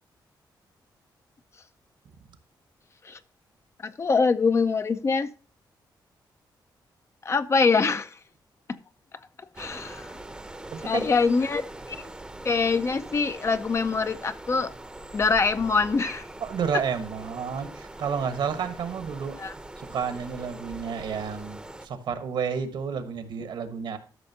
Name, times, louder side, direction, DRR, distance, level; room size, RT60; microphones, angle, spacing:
voice 1, 3.8-5.3 7.2-8.1 9.6-10.1 10.8-12.0 12.4-14.7 15.1-16.2 19.4-19.5, left 4 dB, 35° left, 11 dB, 0.6 m, -24 dB
sound 1, 9.5-21.9, right 1 dB, 10° right, 0.7 m, -42 dB
voice 2, 10.7-11.1 16.4-19.4 19.8-24.0, right 6 dB, 70° right, 9 dB, 1.3 m, -31 dB
12.5 x 6.4 x 2.8 m, 0.37 s
wide cardioid pair, 135°, 8 cm